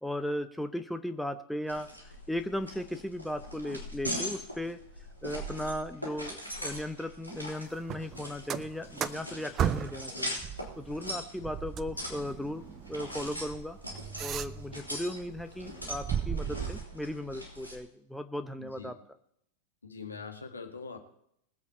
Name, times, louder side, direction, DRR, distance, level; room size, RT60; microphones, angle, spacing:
voice 1, 0.0-4.8 5.2-10.4 10.8-13.8 14.2-19.0, left 1 dB, ahead, 9 dB, 0.8 m, -37 dB
sound 1, 1.7-17.8, equal, 90° right, 3.8 m, -41 dB
sound 2, 7.8-10.1 10.4-14.9 15.3-16.8, right 9 dB, 30° right, 0.6 m, -36 dB
voice 2, 18.6-18.9 19.8-21.0, left 5 dB, 75° left, 4 dB, 1.9 m, -43 dB
20.5 x 8.2 x 4.3 m, 0.71 s
figure-of-eight pair, 90°, 0 cm